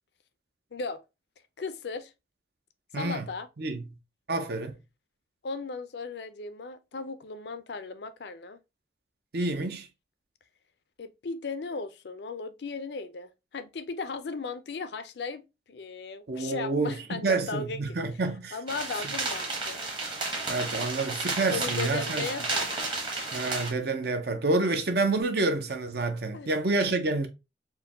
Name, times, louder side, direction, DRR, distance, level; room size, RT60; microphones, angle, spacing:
voice 1, 0.7-1.0 1.6-2.1 2.9-3.5 5.4-8.6 11.0-18.0 18.5-19.8 21.1-22.7 26.3-26.5, left 4 dB, 65° left, 0.5 m, -36 dB
voice 2, 2.9-3.2 3.6-3.8 4.3-4.7 9.3-9.9 16.3-18.6 20.5-22.3 23.3-27.3, right 3 dB, 60° right, 0.7 m, -28 dB
sound 1, 18.7-23.7, right 3 dB, 25° right, 1.0 m, -32 dB
4.5 x 2.2 x 3.4 m
head